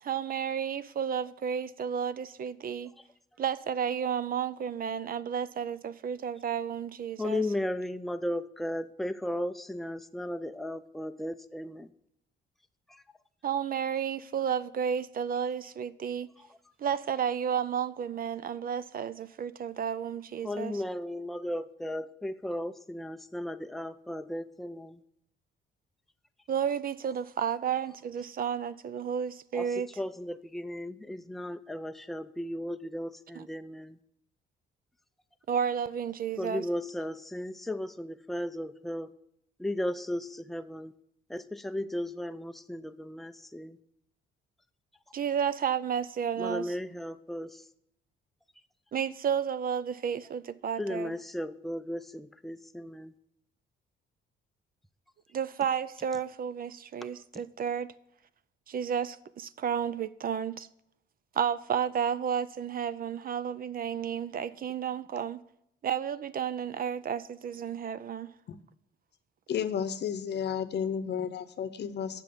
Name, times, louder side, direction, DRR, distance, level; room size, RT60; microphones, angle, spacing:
voice 1, 0.0-2.9 3.4-7.4 13.4-16.3 16.8-20.7 26.5-29.9 33.4-33.5 35.5-36.6 45.1-46.6 48.9-51.1 55.3-57.9 58.7-60.7 61.4-65.4 65.8-68.3, right 8 dB, 45° right, 0.5 m, -32 dB
voice 2, 7.2-11.9 12.9-13.0 20.4-25.0 29.5-34.0 36.4-39.1 39.6-40.9 41.3-43.8 46.4-47.6 50.8-53.1, left 1 dB, ahead, 0.5 m, -35 dB
voice 3, 69.5-72.2, left 7 dB, 60° left, 0.8 m, -32 dB
7.7 x 6.0 x 6.8 m
cardioid pair, 90°, 20 cm